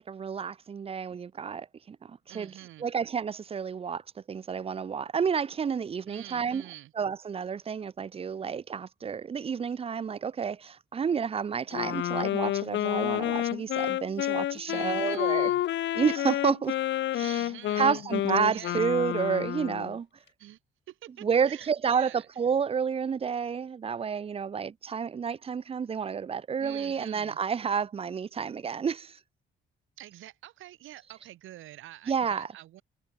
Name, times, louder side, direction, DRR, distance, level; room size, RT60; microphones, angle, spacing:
voice 1, 0.0-2.5 2.8-4.0 4.3-6.6 7.0-15.5 16.0-16.7 17.1-17.5 17.8-20.1 21.2-29.2 32.1-32.5, right 6 dB, 30° right, 0.5 m, -30 dB
voice 2, 2.3-2.9 6.1-6.9 14.6-15.6 17.2-18.0 18.4-18.8 20.4-20.6 20.9-22.3 26.6-27.4 30.0-32.8, right 14 dB, 85° right, 2.6 m, -47 dB
Wind instrument woodwind instrument, 11.7-20.0, left 13 dB, 70° left, 0.7 m, -29 dB
cardioid pair, 90°, 20 cm